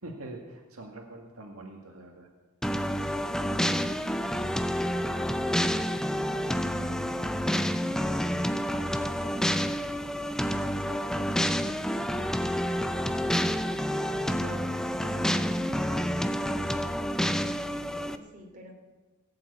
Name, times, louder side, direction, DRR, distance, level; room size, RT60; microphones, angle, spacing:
voice 1, 0.0-2.3 12.6-13.2 13.7-16.7, right 2 dB, 70° right, 1 dB, 1.9 m, -45 dB
sound 1, 2.6-18.2, equal, 5° left, 0.5 m, -29 dB
voice 2, 10.2-11.7 17.4-18.7, equal, 35° right, 1 dB, 2.8 m, -50 dB
18.0 x 7.7 x 8.5 m, 1.2 s
head